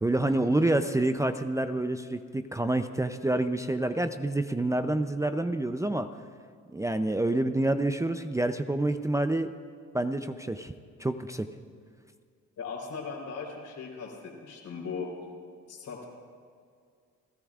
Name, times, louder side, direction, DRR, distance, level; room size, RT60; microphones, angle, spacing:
voice 1, 0.0-6.1 6.7-9.5 9.9-10.7 11.0-11.5, right 2 dB, 10° right, 8 dB, 0.5 m, -28 dB
voice 2, 12.6-15.1 15.7-16.0, left 5 dB, 75° left, -1 dB, 3.9 m, -38 dB
29.5 x 13.0 x 2.5 m, 2.1 s
cardioid pair, 90°, 30 cm